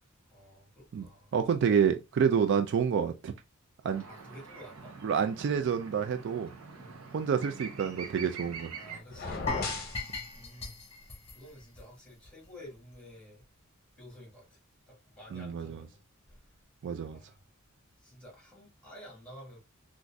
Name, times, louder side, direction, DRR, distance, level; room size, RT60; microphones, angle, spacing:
voice 1, 0.3-1.5 4.1-5.0 6.8-7.0 8.8-9.7 10.3-10.8 11.1-13.4 14.0-14.6 14.9-16.0 16.3-16.5 17.1-17.5 18.0-19.6, equal, 5° left, 1.6 m, -51 dB
voice 2, 1.3-3.3 3.8-4.0 5.0-6.5 7.1-8.7 15.3-15.9 16.8-17.2, right 7 dB, 55° right, 0.3 m, -28 dB
sound 1, 3.9-9.0, right 5 dB, 85° right, 0.7 m, -45 dB
sound 2, 9.1-10.0, left 4 dB, 45° left, 0.7 m, -35 dB
sound 3, 9.5-12.5 12.7-12.9 13.4-13.5, left 3 dB, 30° left, 1.0 m, -39 dB
3.8 x 2.5 x 2.2 m
head